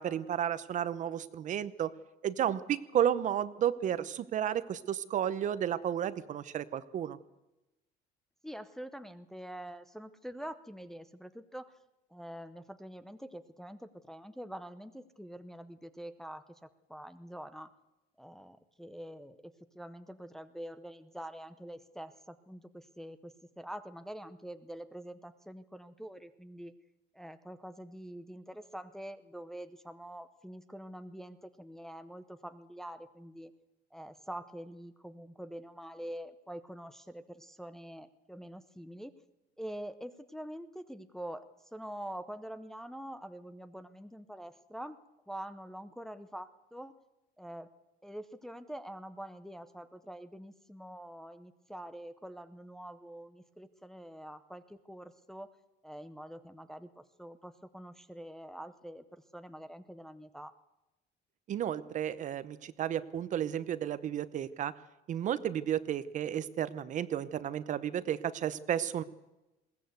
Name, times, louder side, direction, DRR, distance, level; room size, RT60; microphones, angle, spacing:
voice 1, 0.0-1.9 2.2-7.2 61.5-64.7 65.1-69.0, right 10 dB, 40° right, 15 dB, 0.8 m, -32 dB
voice 2, 8.4-11.7 12.1-17.7 18.2-26.7 27.1-33.5 33.9-39.1 39.6-41.5 41.7-45.0 45.3-46.9 47.4-47.7 48.0-55.5 55.8-60.5, right 1 dB, ahead, 10 dB, 0.7 m, -45 dB
21.0 x 17.0 x 8.1 m, 1.0 s
cardioid pair, 155°, 19 cm